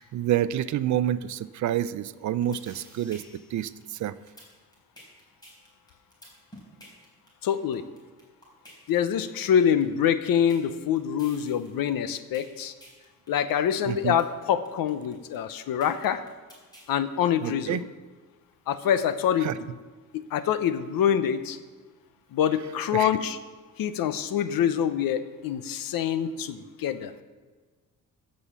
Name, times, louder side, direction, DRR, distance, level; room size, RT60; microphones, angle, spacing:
voice 1, 0.0-3.2 3.5-4.1 13.9-14.2 17.4-17.8 19.4-19.5 22.9-23.1, right 11 dB, 60° right, 15 dB, 0.5 m, -28 dB
sound 1, 2.4-16.9, equal, 10° left, 4.1 m, -51 dB
voice 2, 7.4-7.8 8.9-12.7 13.3-16.2 16.9-17.9 18.7-19.8 20.1-21.6 22.3-23.4 23.8-27.1, left 9 dB, 90° left, 12 dB, 0.8 m, -25 dB
15.0 x 5.6 x 7.3 m, 1.4 s
cardioid pair, 165°, 34 cm